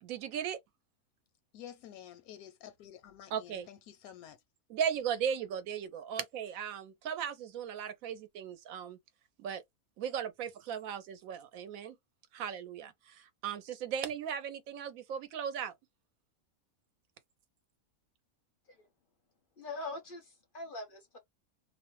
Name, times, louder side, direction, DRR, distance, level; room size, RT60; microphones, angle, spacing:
voice 1, 0.0-0.6 3.3-3.7 4.7-9.0 9.4-9.6 10.0-11.9 12.3-15.7, right 8 dB, 75° right, 1.0 m, -37 dB
voice 2, 1.5-4.4, left 10 dB, 85° left, 1.0 m, -50 dB
voice 3, 19.6-21.2, left 2 dB, 50° left, 0.6 m, -43 dB
2.6 x 2.1 x 2.9 m
omnidirectional pair, 1.5 m